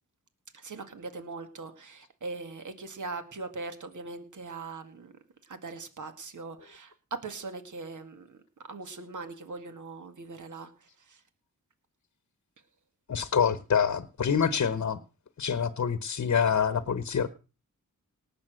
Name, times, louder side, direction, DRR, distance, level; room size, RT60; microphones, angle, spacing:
voice 1, 0.5-5.1 5.4-8.4 8.7-11.2, right 3 dB, 60° right, 8 dB, 2.1 m, -41 dB
voice 2, 13.1-15.0 15.4-17.3, left 7 dB, 55° left, 13 dB, 1.0 m, -26 dB
18.5 x 7.1 x 6.4 m, 0.35 s
cardioid pair, 80°, 33 cm